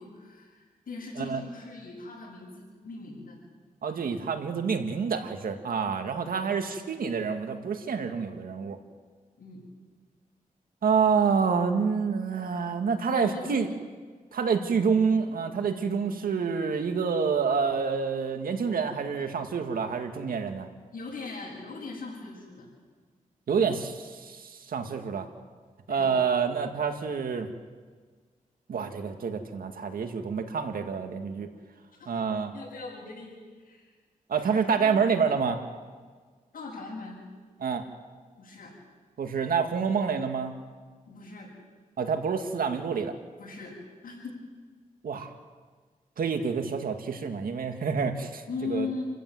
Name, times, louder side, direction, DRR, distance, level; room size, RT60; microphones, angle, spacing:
voice 1, 0.0-3.4 6.2-6.4 9.4-9.6 13.1-13.6 20.9-22.7 25.9-26.1 32.0-32.1 32.5-33.8 34.3-34.5 34.8-35.0 36.5-37.2 38.4-38.7 41.1-41.5 43.4-43.7 44.0-44.4 48.5-49.1, left 4 dB, 80° left, -7 dB, 7.3 m, -39 dB
voice 2, 3.8-8.8 10.8-13.7 14.3-20.7 23.5-25.3 25.9-27.5 28.7-31.5 32.1-32.5 34.3-35.6 37.6-37.8 39.2-40.5 42.0-43.1 45.0-45.3 46.2-48.9, right 5 dB, 85° right, 6 dB, 2.0 m, -28 dB
29.5 x 15.5 x 7.8 m, 1.5 s
wide cardioid pair, 85°, 14 cm